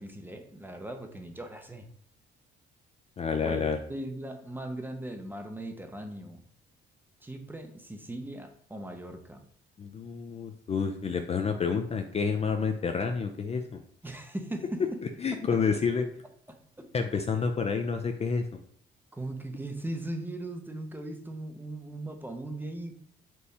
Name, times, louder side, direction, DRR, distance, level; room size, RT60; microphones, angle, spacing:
voice 1, 0.0-1.9 3.4-6.4 7.2-9.4 14.0-15.0 15.3-15.6 16.5-16.9 19.1-22.9, right 1 dB, 10° right, 5 dB, 0.6 m, -39 dB
voice 2, 3.2-3.8 9.8-13.8 15.2-16.1 16.9-18.6, left 5 dB, 30° left, 5 dB, 0.4 m, -29 dB
4.5 x 2.6 x 3.3 m, 0.62 s
cardioid pair, 90°, 20 cm